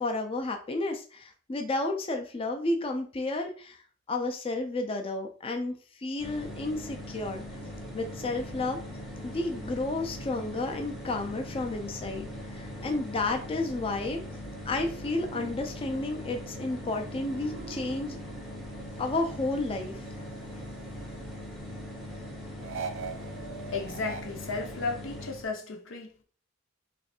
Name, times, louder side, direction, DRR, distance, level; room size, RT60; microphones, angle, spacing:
voice 1, 0.0-3.8 4.1-7.6 7.9-8.8 9.2-14.2 14.7-18.2 19.0-20.0, left 2 dB, 30° left, 0.4 m, -32 dB
sound 1, 6.2-25.5, left 1 dB, ahead, 0.8 m, -41 dB
sound 2, 15.3-19.1 19.5-21.1 22.6-24.2, right 5 dB, 75° right, 0.5 m, -43 dB
voice 2, 23.7-26.2, left 4 dB, 85° left, 0.7 m, -34 dB
3.2 x 2.5 x 4.2 m
head